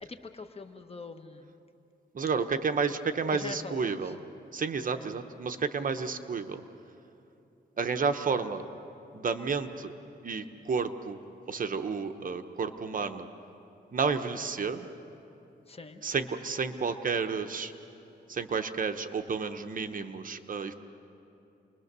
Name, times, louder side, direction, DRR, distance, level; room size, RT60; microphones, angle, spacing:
voice 1, 0.0-1.5 3.3-4.0 5.0-5.1 15.7-16.0, left 4 dB, 35° left, 7 dB, 1.2 m, -42 dB
voice 2, 2.1-4.2 4.5-6.6 7.8-8.6 9.1-9.9 10.2-11.2 11.5-13.3 13.9-14.9 16.0-17.7 18.3-20.7, right 5 dB, 50° right, 8 dB, 1.0 m, -31 dB
28.5 x 21.0 x 6.8 m, 2.8 s
wide cardioid pair, 110°, 18 cm